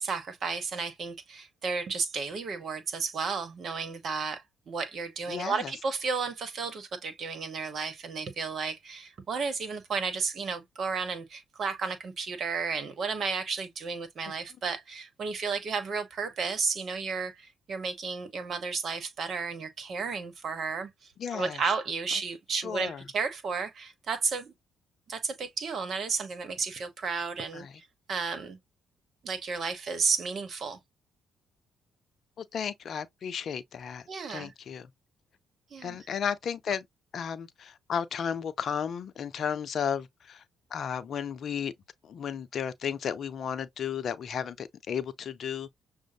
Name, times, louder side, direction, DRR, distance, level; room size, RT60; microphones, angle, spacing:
voice 1, 0.0-24.5 25.1-28.6 29.2-30.8 34.1-34.5 35.7-36.0, right 5 dB, 55° right, 1.0 m, -33 dB
voice 2, 5.3-5.7 14.2-14.3 21.2-21.6 22.6-23.0 27.5-27.7 32.4-34.9 35.8-36.9 37.1-40.4 40.7-41.7 42.0-45.7, left 7 dB, 55° left, 0.5 m, -34 dB
6.1 x 2.1 x 2.7 m
hypercardioid pair, 45°, 0 cm